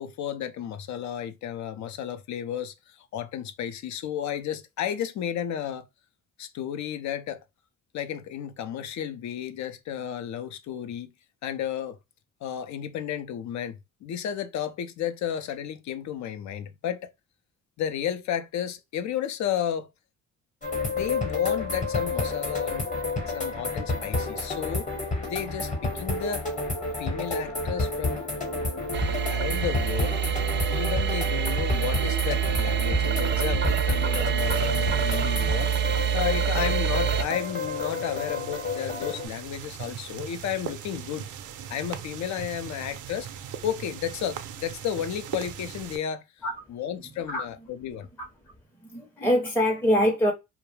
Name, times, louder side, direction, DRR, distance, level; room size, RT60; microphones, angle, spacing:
voice 1, 0.0-5.9 6.4-7.4 7.9-11.1 11.4-12.0 12.4-17.1 17.8-19.9 20.8-22.8 23.3-24.9 25.3-26.5 27.0-28.2 29.3-30.2 30.7-35.7 36.1-41.3 41.7-43.3 43.6-46.2 46.7-48.1, left 9 dB, 65° left, 0.5 m, -32 dB
sound 1, 20.6-39.3, left 3 dB, 25° left, 0.9 m, -30 dB
sound 2, 28.9-37.2, right 9 dB, 40° right, 0.4 m, -26 dB
sound 3, 34.4-46.0, right 9 dB, 85° right, 0.5 m, -40 dB
voice 2, 48.9-50.3, equal, 5° left, 0.6 m, -23 dB
2.3 x 2.0 x 3.0 m
cardioid pair, 90°, 30 cm